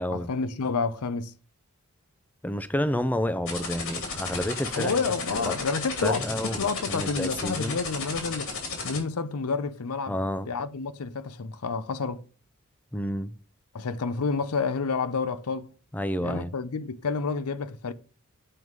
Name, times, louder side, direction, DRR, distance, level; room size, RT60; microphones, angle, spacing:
voice 1, 0.1-1.3 4.7-8.5 8.8-10.2 10.5-12.2 13.7-15.7 16.2-17.9, left 4 dB, 85° left, 0.6 m, -29 dB
voice 2, 2.4-5.0 5.3-5.6 6.0-6.6 6.9-7.8 10.1-10.5 12.9-13.3 15.9-16.5, equal, 10° left, 0.5 m, -29 dB
sound 1, 3.5-9.0, left 4 dB, 65° left, 2.8 m, -33 dB
7.7 x 4.8 x 5.3 m
head